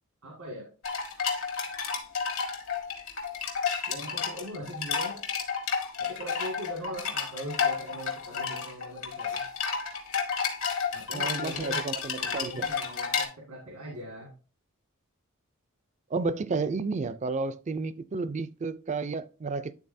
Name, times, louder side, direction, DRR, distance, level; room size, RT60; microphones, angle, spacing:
voice 1, 0.2-0.7 3.9-5.2 6.0-9.4 10.9-11.8 12.2-14.3, equal, 90° right, 2.0 m, -40 dB
sound 1, 0.8-13.2, left 6 dB, 70° left, 1.5 m, -31 dB
voice 2, 11.1-12.7 16.1-19.7, right 4 dB, 35° right, 0.4 m, -32 dB
10.5 x 4.0 x 2.6 m
head